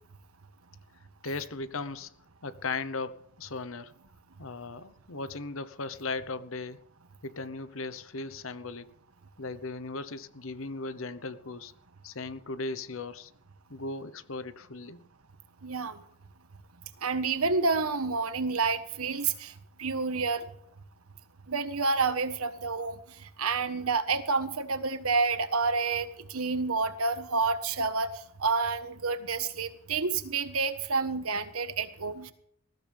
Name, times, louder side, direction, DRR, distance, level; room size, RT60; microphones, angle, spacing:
voice 1, 1.2-2.1 2.4-3.9 4.4-6.8 7.2-8.9 9.4-11.7 12.0-13.3 13.7-15.1, left 3 dB, 70° left, 14 dB, 1.0 m, -37 dB
voice 2, 15.6-16.0 17.0-20.5 21.5-32.3, right 4 dB, 90° right, 10 dB, 1.4 m, -29 dB
20.0 x 15.0 x 3.5 m, 0.67 s
head